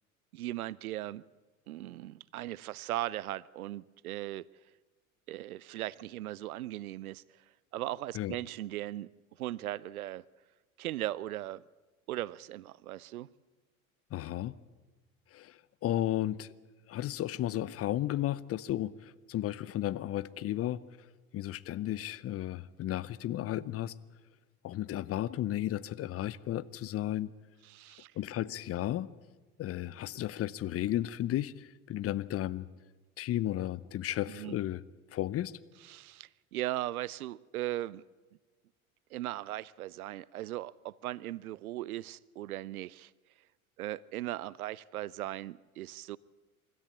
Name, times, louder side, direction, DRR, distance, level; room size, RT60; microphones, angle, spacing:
voice 1, 0.3-1.2 1.7-4.4 5.3-7.2 7.7-9.1 9.4-10.2 10.8-11.6 12.1-13.3 27.7-28.1 34.3-34.6 35.9-38.0 39.1-43.1 43.8-46.2, right 15 dB, 80° right, 0.6 m, -38 dB
voice 2, 14.1-14.6 15.3-16.5 16.9-20.8 21.3-23.9 24.6-27.3 28.2-29.1 29.6-32.7 33.2-34.8 35.1-35.6, left 13 dB, 35° left, 0.7 m, -34 dB
25.0 x 13.5 x 8.4 m
hypercardioid pair, 75°, 43 cm